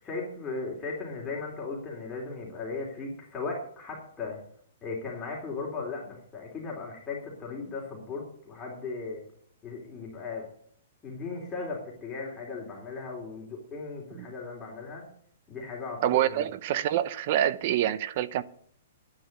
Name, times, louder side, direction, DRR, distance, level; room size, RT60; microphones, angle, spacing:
voice 1, 0.0-4.4 4.8-9.2 9.6-10.5 11.0-15.0 15.5-16.4, left 4 dB, 15° left, -3 dB, 3.7 m, -37 dB
voice 2, 16.0-18.4, right 11 dB, 45° right, 17 dB, 0.8 m, -26 dB
11.0 x 9.8 x 8.2 m, 0.62 s
hypercardioid pair, 150°, 0 cm